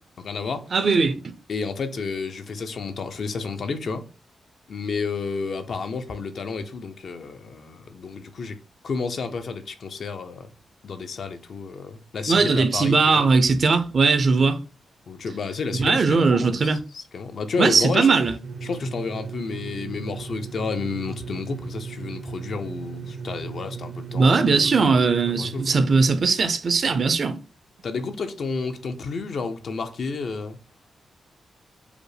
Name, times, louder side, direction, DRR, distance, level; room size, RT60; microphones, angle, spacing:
voice 1, 0.2-0.8 1.5-4.0 4.7-8.6 8.8-10.5 10.8-13.3 15.1-18.1 18.6-24.9 25.4-25.7 27.8-30.6, left 4 dB, 60° left, 0.6 m, -31 dB
voice 2, 0.7-1.1 12.3-14.6 15.8-16.8 17.6-18.3 24.1-27.4, right 4 dB, 50° right, 0.6 m, -19 dB
sound 1, 18.4-26.0, right 5 dB, 75° right, 1.0 m, -36 dB
5.0 x 2.1 x 4.8 m
cardioid pair, 110°, 0 cm